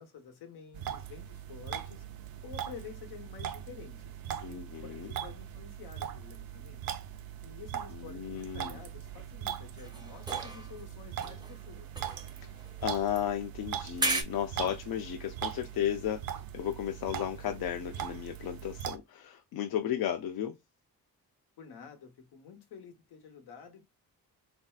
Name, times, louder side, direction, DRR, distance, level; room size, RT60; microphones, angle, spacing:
voice 1, 0.0-2.1 2.4-6.8 7.4-11.9 21.6-23.8, left 6 dB, 85° left, 0.9 m, -50 dB
sound 1, 0.7-19.0, right 9 dB, 70° right, 0.5 m, -40 dB
voice 2, 4.4-5.1 8.0-8.8 12.4-12.5 12.8-16.2 16.5-20.6, left 10 dB, 70° left, 0.5 m, -34 dB
sound 2, 9.8-10.9 11.2-13.3 14.0-14.2, right 2 dB, 10° right, 0.5 m, -36 dB
3.2 x 2.6 x 2.2 m
cardioid pair, 110°, 38 cm